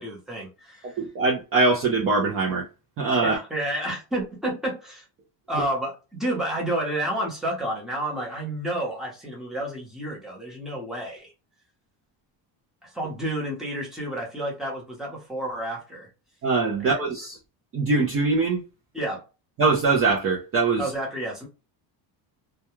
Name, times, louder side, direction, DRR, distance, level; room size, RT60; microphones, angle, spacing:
voice 1, 0.0-1.0 3.2-5.0 5.5-11.3 12.8-16.1 18.9-19.2 20.8-21.5, right 1 dB, ahead, 0.8 m, -30 dB
voice 2, 0.8-2.7 3.0-3.4 16.4-17.4 17.7-18.6 19.6-20.9, right 3 dB, 30° right, 0.4 m, -22 dB
2.3 x 2.2 x 2.9 m
cardioid pair, 165°, 46 cm